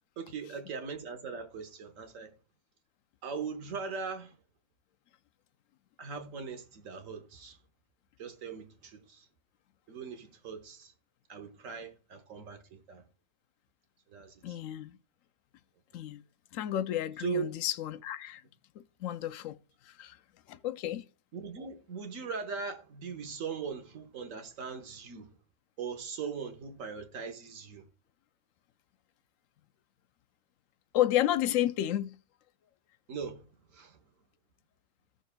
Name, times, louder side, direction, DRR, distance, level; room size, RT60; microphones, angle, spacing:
voice 1, 0.2-2.3 3.2-4.4 6.0-7.6 8.2-9.2 9.9-10.9 11.3-13.0 14.1-14.6 17.2-17.5 21.3-25.3 25.8-27.9 33.1-33.4 33.7-34.0, right 5 dB, 90° right, 1.5 m, -40 dB
voice 2, 14.4-15.0 15.9-16.2 16.5-18.4 18.8-19.6 19.9-20.2 20.5-21.0 30.9-32.2, left 12 dB, 85° left, 1.0 m, -31 dB
15.5 x 6.4 x 2.2 m
omnidirectional pair, 1.3 m